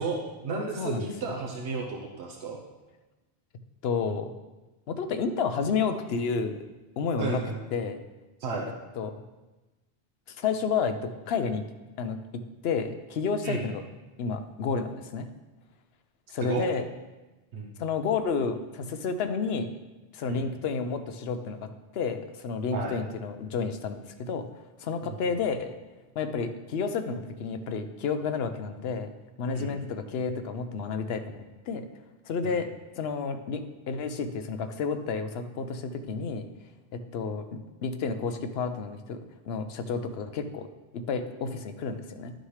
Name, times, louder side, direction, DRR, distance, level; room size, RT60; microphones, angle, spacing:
voice 1, 0.0-2.6 7.2-7.6 8.4-8.7 13.4-13.7 16.4-16.7 17.5-17.7 20.3-20.5 22.7-22.9 25.0-25.2 29.5-29.7 32.4-32.6, right 4 dB, 90° right, 0 dB, 1.2 m, -33 dB
voice 2, 0.8-1.1 3.8-4.3 4.9-6.6 7.0-7.4 7.7-8.0 9.0-9.1 10.3-11.6 12.0-12.2 12.6-13.8 14.2-15.3 16.3-16.9 17.8-19.7 20.1-21.7 21.9-24.5 24.8-25.7 26.2-29.1 29.4-31.9 32.3-32.7 33.0-36.5 36.9-37.5 37.8-39.2 39.5-40.7 40.9-42.3, left 5 dB, 70° left, 9 dB, 0.9 m, -30 dB
11.0 x 6.3 x 3.2 m, 1.1 s
omnidirectional pair, 1.1 m